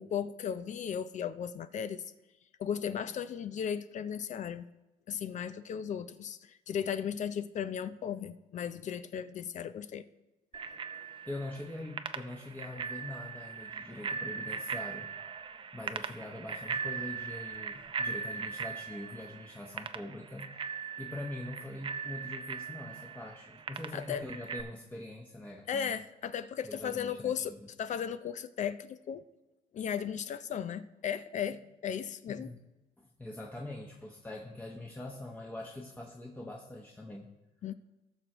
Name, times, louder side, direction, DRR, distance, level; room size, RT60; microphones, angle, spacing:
voice 1, 0.0-2.0 2.6-4.7 5.1-10.0 23.9-24.2 25.7-29.2 29.7-32.5 37.6-37.7, left 8 dB, 45° left, 13 dB, 0.5 m, -36 dB
Bicycle bell, 10.5-24.6, right 6 dB, 30° right, 0.6 m, -40 dB
voice 2, 11.3-15.1 15.7-26.0 26.6-27.6 32.3-32.6 33.0-37.3, left 1 dB, 10° left, -1 dB, 0.9 m, -43 dB
18.5 x 6.2 x 3.0 m, 1.0 s
cardioid pair, 110°, 17 cm